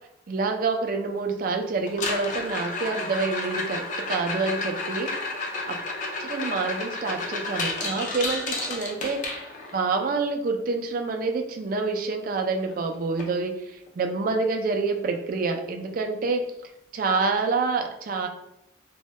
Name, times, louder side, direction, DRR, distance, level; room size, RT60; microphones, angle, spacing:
voice 1, 0.3-5.1 5.7-5.8 6.2-9.2 9.7-13.6 14.0-16.4 16.9-18.3, right 4 dB, 45° right, 4 dB, 0.3 m, -27 dB
sound 1, 1.9-9.8 12.1-12.2 12.4-12.8 13.2-13.3 13.9-14.0 15.9-16.0, left 3 dB, 40° left, 0.4 m, -31 dB
2.6 x 2.1 x 3.1 m, 0.82 s
head